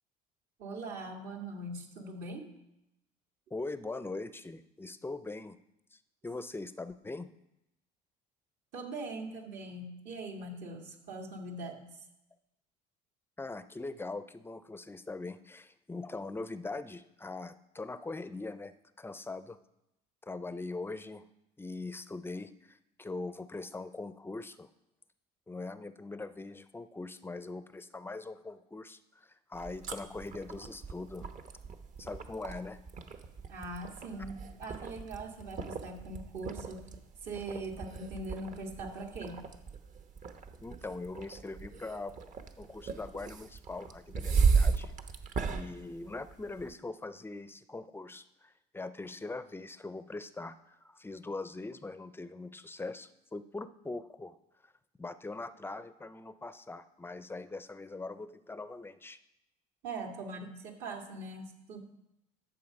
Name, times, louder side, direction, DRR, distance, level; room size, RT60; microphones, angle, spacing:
voice 1, 0.6-2.5 8.7-11.9 33.5-36.9 37.2-39.5 59.8-61.8, right 2 dB, 70° right, 0 dB, 2.2 m, -41 dB
voice 2, 3.5-5.6 5.9-7.3 13.4-19.6 20.2-21.2 21.6-24.7 25.5-31.3 32.0-32.8 40.6-42.2 42.6-44.9 45.5-54.4 54.6-54.7 55.0-59.2, left 3 dB, 10° left, 13 dB, 0.5 m, -42 dB
sound 1, 29.5-46.7, right 5 dB, 45° right, 1.0 m, -36 dB
11.5 x 6.9 x 5.3 m, 0.88 s
cardioid pair, 105°, 18 cm